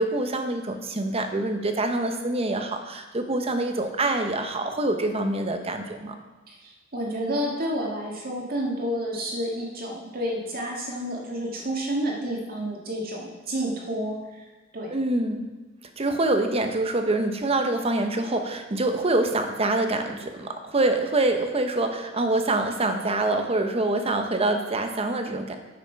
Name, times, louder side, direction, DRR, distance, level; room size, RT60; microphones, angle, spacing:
voice 1, 0.0-6.2 14.9-15.4 16.0-25.6, right 2 dB, 30° right, 6 dB, 0.8 m, -25 dB
voice 2, 6.5-14.5 14.7-15.0, equal, 50° right, -2 dB, 1.7 m, -30 dB
8.6 x 5.9 x 5.7 m, 1.2 s
head